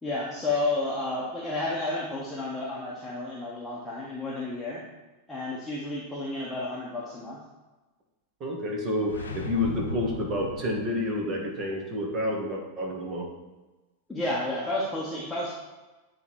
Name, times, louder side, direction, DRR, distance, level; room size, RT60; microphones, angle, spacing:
voice 1, 0.0-4.8 5.3-7.4 14.1-15.5, left 2 dB, 5° left, -7 dB, 1.1 m, -31 dB
voice 2, 8.4-13.3, left 1 dB, 30° right, 0 dB, 1.3 m, -29 dB
sound 1, 9.0-11.2, left 3 dB, 70° left, 0.7 m, -37 dB
8.3 x 3.2 x 4.5 m, 1.2 s
figure-of-eight pair, 90°, 0 cm